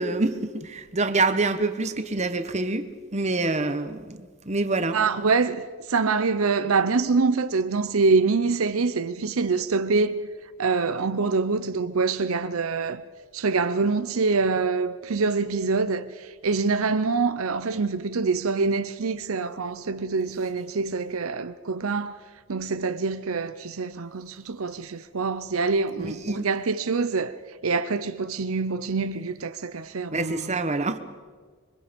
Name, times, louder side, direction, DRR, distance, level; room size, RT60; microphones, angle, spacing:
voice 1, 0.0-2.9 3.1-5.0 26.0-26.5 30.1-31.0, right 3 dB, 30° right, 1.2 m, -26 dB
voice 2, 4.8-10.3 10.6-13.0 13.3-22.2 22.5-27.4 27.6-30.6, right 4 dB, 85° right, 0.7 m, -25 dB
26.5 x 23.5 x 5.3 m
head